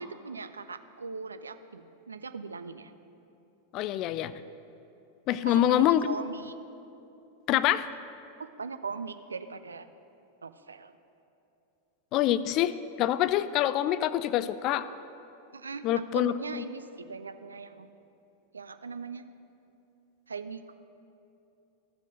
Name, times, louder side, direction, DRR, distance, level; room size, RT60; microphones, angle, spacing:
voice 1, 0.0-2.9 5.4-6.5 8.4-9.9 10.4-11.0 15.5-17.9 18.5-19.3 20.3-20.7, right 4 dB, 75° right, 11 dB, 0.4 m, -40 dB
voice 2, 3.7-4.3 5.3-6.1 7.5-7.9 12.1-14.9 15.8-16.6, left 12 dB, 40° left, 15 dB, 0.3 m, -26 dB
14.5 x 5.2 x 5.1 m, 2.8 s
figure-of-eight pair, 90°, 0 cm